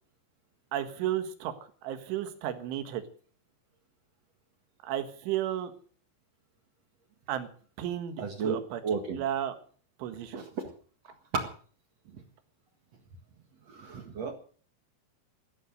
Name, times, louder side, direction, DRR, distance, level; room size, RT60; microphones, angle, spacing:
voice 1, 0.7-1.5 1.8-3.0 4.8-5.7 7.3-7.5 7.8-8.8 9.2-9.6 10.0-10.5, right 11 dB, 80° right, 9 dB, 4.0 m, -33 dB
voice 2, 8.2-8.6 8.8-9.2 10.3-10.6 11.3-11.5 12.1-12.2 13.7-14.3, right 5 dB, 55° right, 6 dB, 1.9 m, -33 dB
14.5 x 14.0 x 6.4 m, 0.43 s
omnidirectional pair, 5.5 m